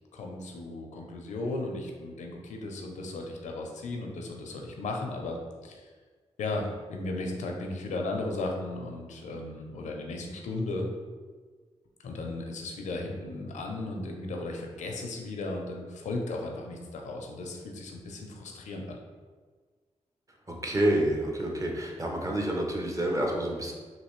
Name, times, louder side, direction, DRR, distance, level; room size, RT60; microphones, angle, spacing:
voice 1, 0.1-5.9 6.4-10.9 12.0-19.0, left 2 dB, 85° left, 1 dB, 0.5 m, -35 dB
voice 2, 20.6-23.7, right 1 dB, 25° right, 0 dB, 0.7 m, -28 dB
3.2 x 2.6 x 3.0 m, 1.5 s
cardioid pair, 60°, 12 cm